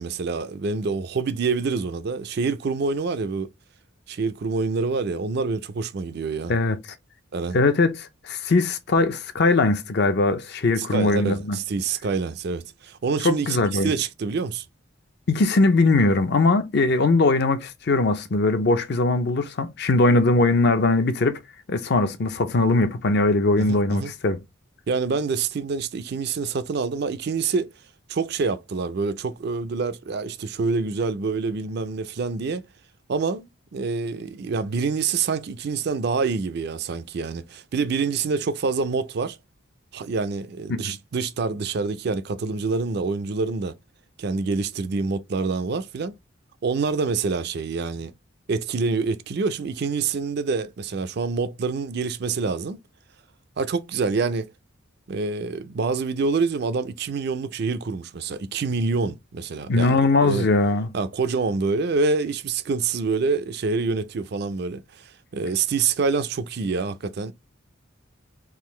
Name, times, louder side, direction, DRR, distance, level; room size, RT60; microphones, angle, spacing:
voice 1, 0.0-3.5 4.1-6.5 7.3-7.6 10.8-14.7 23.6-24.1 24.9-27.7 28.1-32.7 33.1-39.4 39.9-43.8 44.2-46.1 46.6-48.1 48.5-52.8 53.6-54.5 55.1-60.5 60.9-67.3, right 4 dB, 50° right, 0.4 m, -26 dB
voice 2, 7.5-11.6 13.2-13.9 15.3-21.4 21.7-24.4 40.7-41.0 59.7-60.9, left 3 dB, 55° left, 0.5 m, -20 dB
3.6 x 2.5 x 3.1 m
head